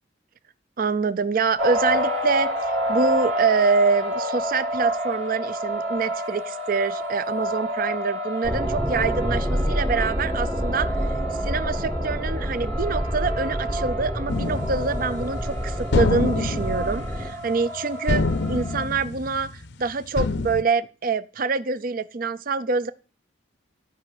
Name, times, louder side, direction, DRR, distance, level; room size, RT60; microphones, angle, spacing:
voice 1, 0.8-2.5 2.9-10.9 11.4-18.2 18.5-22.9, right 4 dB, 45° right, 0.5 m, -25 dB
sound 1, 1.6-18.8, equal, 85° right, 2.6 m, -30 dB
sound 2, 8.4-17.3, equal, 10° right, 0.8 m, -28 dB
sound 3, 14.3-15.5 15.9-17.8 18.1-19.7 20.2-20.6, left 3 dB, 60° left, 0.6 m, -26 dB
13.0 x 5.5 x 7.8 m
head